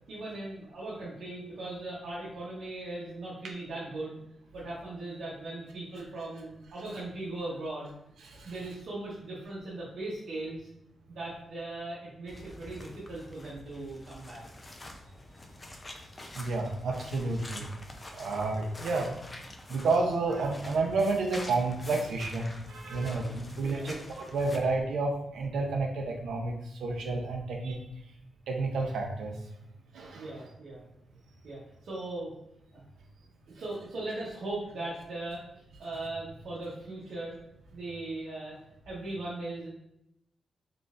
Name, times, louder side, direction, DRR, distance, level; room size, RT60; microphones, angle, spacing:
voice 1, 0.1-4.2 4.5-7.9 8.4-10.7 11.1-14.4 23.2-23.9 30.1-30.8 31.4-32.3 32.7-32.8 33.5-37.3 37.7-38.6 38.8-39.7, right 2 dB, 70° right, -8 dB, 1.1 m, -39 dB
sound 1, 12.3-24.6, left 1 dB, 20° left, 0.5 m, -47 dB
voice 2, 16.4-17.7 18.2-19.2 19.7-26.5 26.8-27.8 28.5-29.3 29.9-30.3, right 3 dB, 90° right, 1 dB, 0.7 m, -30 dB
3.8 x 3.3 x 2.5 m, 0.80 s
wide cardioid pair, 125°, 0 cm